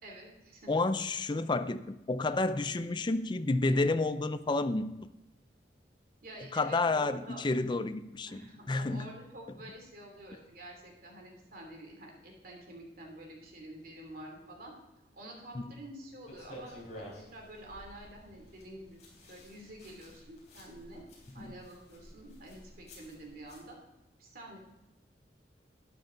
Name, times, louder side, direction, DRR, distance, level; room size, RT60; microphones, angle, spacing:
voice 1, 0.0-0.7 6.2-7.4 8.3-14.7 15.1-21.0 21.3-23.8 24.2-24.6, right 1 dB, 55° right, 1 dB, 3.0 m, -49 dB
voice 2, 0.7-4.9 6.5-9.1 15.5-15.6 21.4-21.5, left 2 dB, 25° left, 11 dB, 0.5 m, -30 dB
sound 1, 16.3-23.6, equal, 40° left, 4.3 m, -52 dB
12.5 x 9.5 x 3.9 m, 0.96 s
head